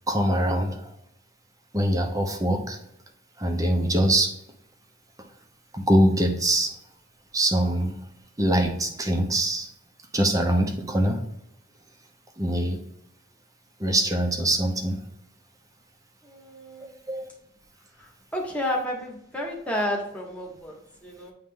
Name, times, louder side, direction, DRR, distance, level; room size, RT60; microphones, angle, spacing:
voice 1, 0.1-0.8 1.7-2.8 3.4-4.3 5.7-6.7 7.3-7.9 8.4-9.7 10.1-11.2 12.4-12.8 13.8-15.0 17.1-17.3, right 1 dB, 15° right, 4 dB, 0.8 m, -23 dB
voice 2, 16.2-17.0 18.0-21.3, left 1 dB, 5° left, -1 dB, 1.3 m, -31 dB
9.3 x 3.3 x 3.7 m, 0.77 s
head